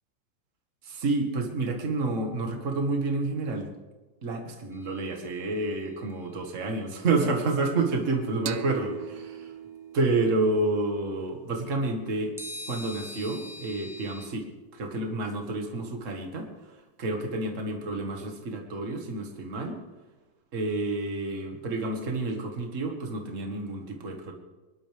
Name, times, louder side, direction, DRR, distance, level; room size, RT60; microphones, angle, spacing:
voice 1, 0.8-3.7 4.2-9.5 9.9-12.3 12.7-14.5 14.7-16.5 17.0-19.8 20.5-24.3, right 2 dB, 40° right, 3 dB, 2.1 m, -29 dB
sound 1, 4.7-6.0 12.4-14.3, left 1 dB, ahead, 0.8 m, -43 dB
sound 2, 8.5-11.8, right 10 dB, 65° right, 0.9 m, -41 dB
23.5 x 11.5 x 3.5 m, 1.2 s
omnidirectional pair, 2.1 m